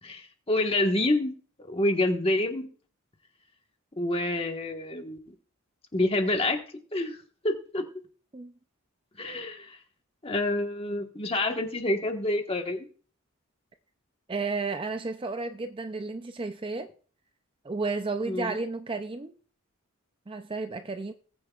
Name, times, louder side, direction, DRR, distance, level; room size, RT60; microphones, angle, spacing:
voice 1, 0.0-2.7 4.0-5.2 5.9-6.6 6.9-7.2 7.4-7.9 9.2-9.8 10.2-12.9 18.2-18.6, left 1 dB, 25° left, 1.3 m, -27 dB
voice 2, 14.3-16.9 17.6-19.4 20.3-21.1, right 3 dB, 25° right, 0.4 m, -32 dB
19.0 x 9.2 x 2.4 m
head